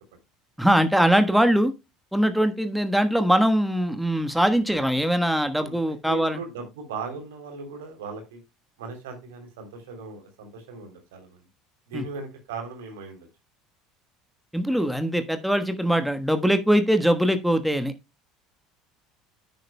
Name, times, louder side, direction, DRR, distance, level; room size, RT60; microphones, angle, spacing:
voice 1, 0.6-1.7 2.1-6.4 11.9-12.0 14.5-17.9, equal, ahead, 1.3 m, -22 dB
voice 2, 5.6-8.4 8.8-11.4 11.9-13.3, right 4 dB, 65° right, 3.2 m, -38 dB
11.0 x 9.3 x 2.2 m
figure-of-eight pair, 65°, 0 cm